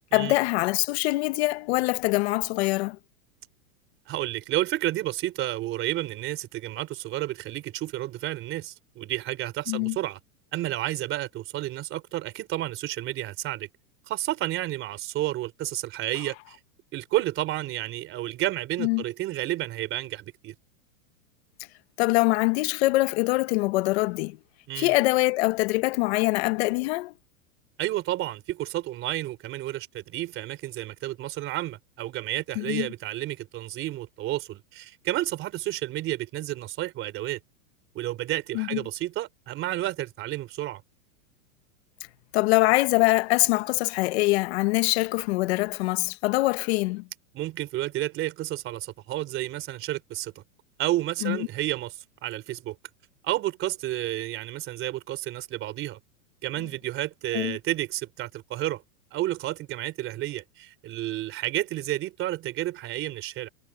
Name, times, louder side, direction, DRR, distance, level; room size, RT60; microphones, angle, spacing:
voice 1, 0.1-3.0 9.7-10.0 18.8-19.0 22.0-24.4 24.8-27.1 32.5-32.9 38.5-38.8 42.3-47.1 51.2-51.4 57.3-57.6, left 22 dB, 45° left, 1.4 m, -24 dB
voice 2, 4.1-10.2 10.5-13.7 14.1-16.6 16.9-20.5 24.7-24.9 27.8-37.4 37.9-40.8 47.3-50.4 50.8-52.8 53.2-56.0 56.4-58.8 59.1-63.5, right 15 dB, 30° right, 3.8 m, -31 dB
supercardioid pair, 160°, 44 cm